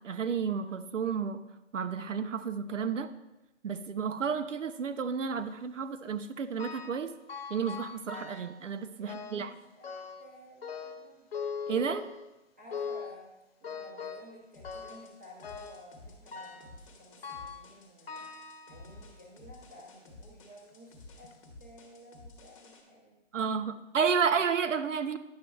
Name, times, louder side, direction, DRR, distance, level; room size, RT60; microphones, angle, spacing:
voice 1, 0.0-1.4 1.7-3.1 3.6-7.1 7.5-9.5 11.7-12.1 23.3-25.2, right 6 dB, 75° right, 10 dB, 0.8 m, -31 dB
sound 1, 6.6-7.0 7.3-8.6 9.1-9.5 9.8-10.3 10.6-12.3 12.7-13.2 13.6-14.3 14.6-15.1 15.4-15.8 16.3-16.8 17.2-17.7 18.1-19.1 19.8-19.9 20.7-20.8 21.2-21.3, left 6 dB, 50° left, 0.9 m, -41 dB
voice 2, 9.0-11.3 12.6-13.3 13.6-18.4 18.7-23.2 24.2-24.4, equal, 10° right, -8 dB, 0.6 m, -54 dB
sound 2, 14.5-22.8, left 2 dB, 25° left, 1.0 m, -53 dB
10.5 x 7.3 x 2.3 m, 0.98 s
hypercardioid pair, 160°, 38 cm